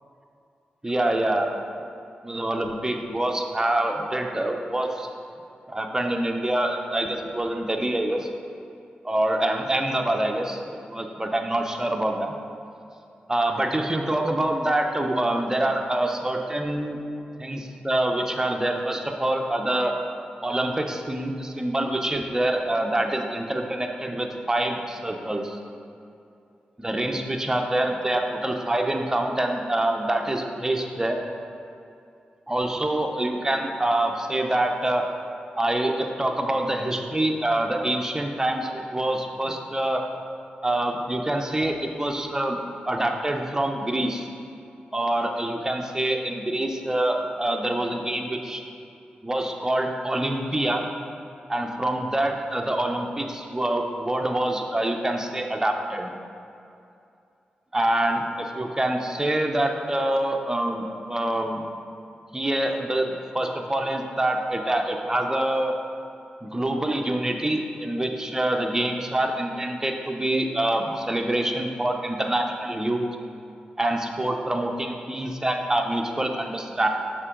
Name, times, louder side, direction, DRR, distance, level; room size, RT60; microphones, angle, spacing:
voice 1, 0.8-1.6 2.2-5.1 5.7-8.3 9.0-12.3 13.3-17.0 17.4-19.9 20.4-25.6 26.8-31.2 32.5-35.0 35.6-40.0 40.6-42.6 42.9-44.3 44.9-48.6 49.2-50.9 51.5-56.1 57.7-61.6 62.3-65.7 66.4-73.1 73.8-76.9, right 1 dB, 15° right, 3 dB, 0.6 m, -26 dB
6.5 x 4.5 x 3.7 m, 2.6 s
cardioid pair, 55°, 3 cm